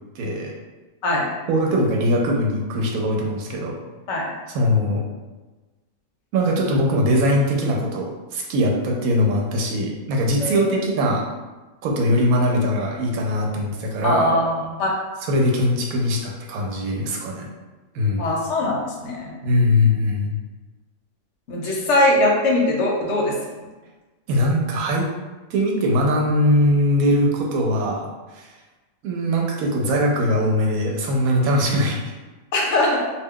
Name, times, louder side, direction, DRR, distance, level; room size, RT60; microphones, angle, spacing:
voice 1, 0.2-0.5 1.5-3.8 4.5-5.1 6.3-11.2 11.8-14.3 15.3-17.5 17.9-18.2 19.4-20.4 21.6-21.8 24.3-25.1 25.5-28.1 28.3-28.5 29.0-32.1, equal, 90° right, 0 dB, 1.0 m, -21 dB
voice 2, 10.4-10.8 14.0-14.9 18.2-19.3 21.5-23.4 32.5-33.0, left 1 dB, 65° left, -2 dB, 0.9 m, -21 dB
2.4 x 2.2 x 3.5 m, 1.2 s
omnidirectional pair, 1.5 m